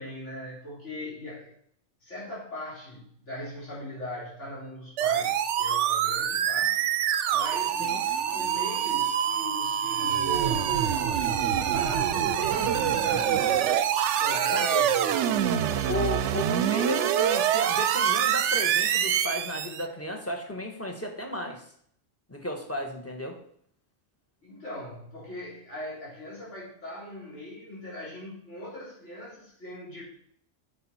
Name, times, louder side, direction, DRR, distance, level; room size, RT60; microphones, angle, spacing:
voice 1, 0.0-1.5 2.0-6.9 7.3-7.8 8.2-15.2 15.6-16.1 24.4-30.0, left 1 dB, 70° left, -8 dB, 4.3 m, -40 dB
sound 1, 5.0-19.8, right 9 dB, 70° right, 0.9 m, -25 dB
voice 2, 14.3-14.8 15.9-21.6 22.3-23.4, left 1 dB, 10° left, 3 dB, 1.3 m, -34 dB
9.1 x 6.7 x 4.4 m, 0.64 s
omnidirectional pair, 1.3 m